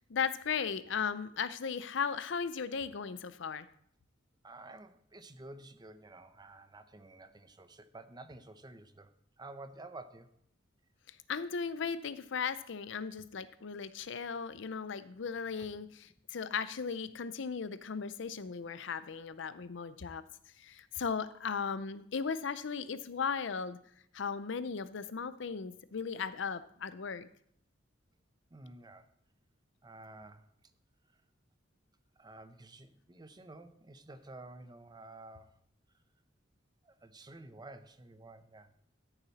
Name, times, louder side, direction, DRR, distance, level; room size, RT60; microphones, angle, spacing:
voice 1, 0.1-3.7 11.1-20.2 20.6-23.8 24.1-27.3, left 6 dB, 70° left, 14 dB, 0.6 m, -37 dB
voice 2, 4.4-9.1 9.4-10.3 13.2-13.3 15.6-15.7 28.5-29.1 29.8-30.5 32.2-35.6 36.8-38.7, right 2 dB, 20° right, 10 dB, 0.7 m, -51 dB
13.0 x 6.9 x 4.1 m, 0.66 s
head